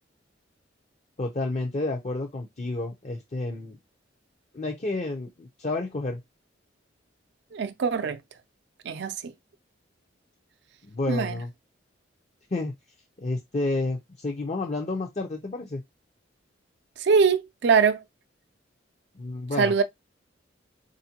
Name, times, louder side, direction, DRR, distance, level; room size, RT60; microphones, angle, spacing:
voice 1, 1.2-3.8 4.5-6.2 10.8-11.5 12.5-12.7 13.2-15.8 19.1-19.8, left 2 dB, 35° left, 0.6 m, -30 dB
voice 2, 7.5-8.2 8.9-9.3 11.1-11.4 17.0-18.0 19.6-19.8, right 5 dB, 65° right, 0.4 m, -22 dB
4.4 x 2.5 x 2.8 m
head